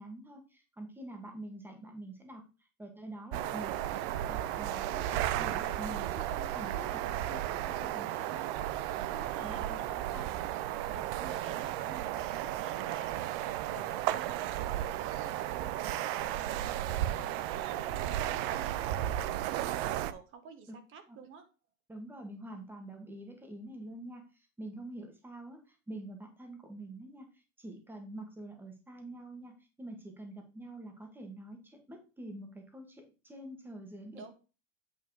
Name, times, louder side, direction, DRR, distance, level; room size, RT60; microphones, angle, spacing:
voice 1, 0.0-2.4 2.8-8.5 9.0-10.3 20.7-20.8 21.1-21.2 21.9-34.2, right 1 dB, 5° right, 4 dB, 1.5 m, -46 dB
sound 1, 3.3-20.1, right 12 dB, 50° right, 0.6 m, -34 dB
voice 2, 9.4-9.7 10.8-21.4 34.1-34.3, right 6 dB, 35° right, 9 dB, 1.2 m, -51 dB
8.7 x 4.5 x 4.7 m, 0.32 s
supercardioid pair, 165°, 37 cm